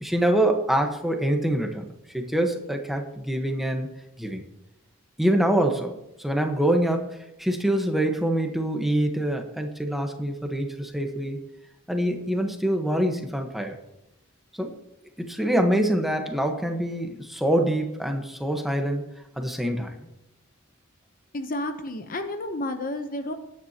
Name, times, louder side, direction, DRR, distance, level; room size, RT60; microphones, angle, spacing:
voice 1, 0.0-3.9 4.2-4.4 5.2-11.4 11.9-13.8 14.5-14.7 15.3-19.0 19.4-19.9, right 1 dB, ahead, 3 dB, 1.2 m, -25 dB
voice 2, 21.3-23.3, left 1 dB, 45° left, 7 dB, 0.8 m, -31 dB
19.5 x 9.6 x 2.9 m, 0.89 s
head